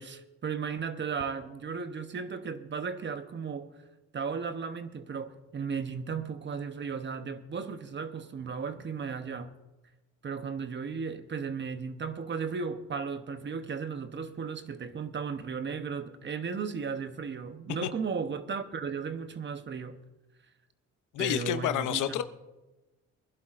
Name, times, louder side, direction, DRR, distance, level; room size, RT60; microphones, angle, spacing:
voice 1, 0.0-3.7 4.1-9.5 10.2-20.0 21.2-22.0, right 5 dB, 40° right, 0.9 m, -35 dB
voice 2, 21.1-22.2, left 11 dB, 80° left, 0.8 m, -29 dB
23.5 x 11.0 x 2.5 m
cardioid pair, 90°, 30 cm